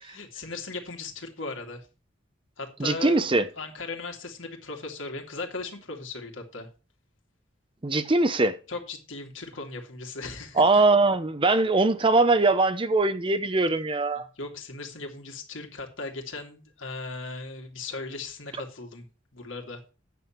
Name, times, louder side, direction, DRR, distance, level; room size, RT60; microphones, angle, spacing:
voice 1, 0.1-1.9 2.6-3.2 3.6-6.7 8.7-10.8 14.2-19.0 19.3-19.8, left 3 dB, 80° left, 2.5 m, -37 dB
voice 2, 2.8-3.4 7.8-8.6 10.6-14.3, right 3 dB, 25° right, 0.7 m, -21 dB
9.2 x 7.0 x 5.8 m
head